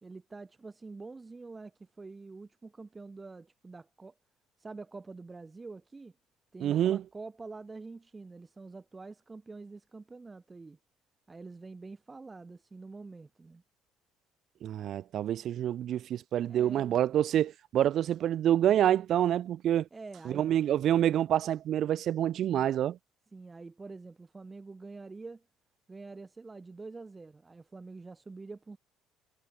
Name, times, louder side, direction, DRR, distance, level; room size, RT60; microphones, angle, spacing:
voice 1, 0.0-4.1 4.6-6.1 6.5-10.8 11.3-13.6 16.5-17.0 19.9-20.5 23.3-25.5 25.9-28.8, right 3 dB, 25° right, 2.4 m, -46 dB
voice 2, 6.6-7.0 14.6-19.9 20.3-23.0, right 11 dB, 60° right, 0.5 m, -27 dB
hypercardioid pair, 65°, 0 cm